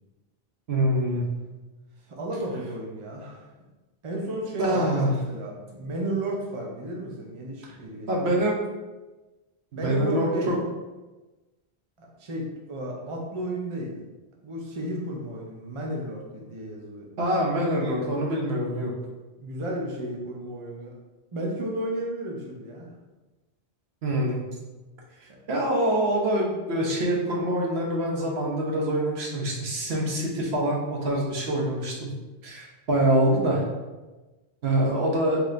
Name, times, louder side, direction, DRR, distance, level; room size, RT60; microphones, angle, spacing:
voice 1, 0.7-1.2 4.6-5.1 8.1-8.6 9.7-10.6 17.2-18.9 24.0-24.4 25.5-32.1 32.4-33.6 34.6-35.4, right 1 dB, 75° right, -2 dB, 1.1 m, -25 dB
voice 2, 2.1-3.5 4.0-8.3 9.7-10.5 12.0-13.9 14.4-17.1 19.4-20.9 21.3-22.9 34.8-34.9, right 1 dB, 35° right, -2 dB, 0.6 m, -33 dB
4.0 x 3.1 x 3.2 m, 1.2 s
omnidirectional pair, 1.1 m